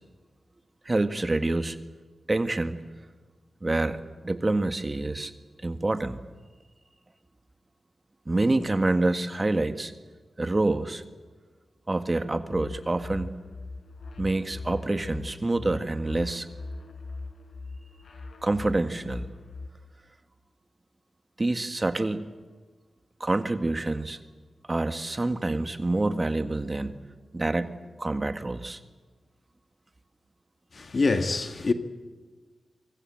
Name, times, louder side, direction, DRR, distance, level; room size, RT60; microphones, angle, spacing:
voice 1, 0.9-1.8 2.3-2.8 3.6-5.3 5.6-6.2 8.3-9.9 10.4-11.0 11.9-13.3 14.2-16.5 18.4-19.3 21.4-22.3 23.2-24.2 24.7-27.0 27.3-27.7 28.0-28.8, right 2 dB, 30° right, 1.8 m, -27 dB
sound 1, 12.3-19.7, left 3 dB, 75° left, 4.7 m, -40 dB
voice 2, 30.7-31.7, left 3 dB, 55° left, 2.0 m, -25 dB
26.5 x 24.0 x 7.8 m
cardioid pair, 55°, 0 cm